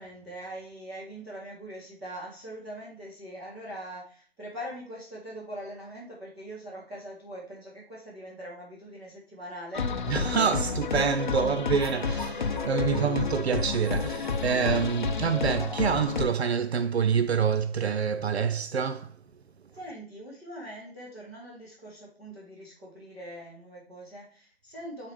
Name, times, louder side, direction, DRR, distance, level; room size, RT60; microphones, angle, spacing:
voice 1, 0.0-10.2 10.6-10.7 12.8-13.1 19.7-25.1, right 1 dB, 5° right, 0.9 m, -42 dB
sound 1, 9.7-16.3, left 4 dB, 50° left, 0.7 m, -30 dB
voice 2, 10.1-19.2, right 6 dB, 85° right, 0.5 m, -27 dB
8.3 x 4.1 x 3.2 m
figure-of-eight pair, 155°, 31 cm